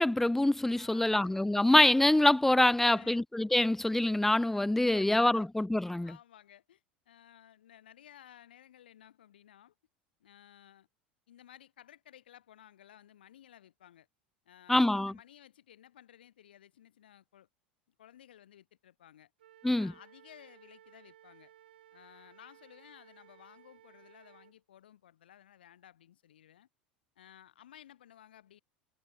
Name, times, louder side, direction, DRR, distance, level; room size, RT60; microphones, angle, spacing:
voice 1, 0.0-6.1 14.7-15.1 19.6-19.9, left 1 dB, 5° left, 0.4 m, -25 dB
voice 2, 0.7-1.3 2.8-3.2 4.3-5.5 6.0-9.7 10.2-10.9 11.3-14.1 14.4-17.5 18.0-19.3 19.7-21.5 21.9-26.7 27.2-28.6, left 11 dB, 70° left, 2.9 m, -57 dB
Wind instrument woodwind instrument, 19.4-24.5, right 12 dB, 70° right, 7.5 m, -59 dB
figure-of-eight pair, 75°, 6 cm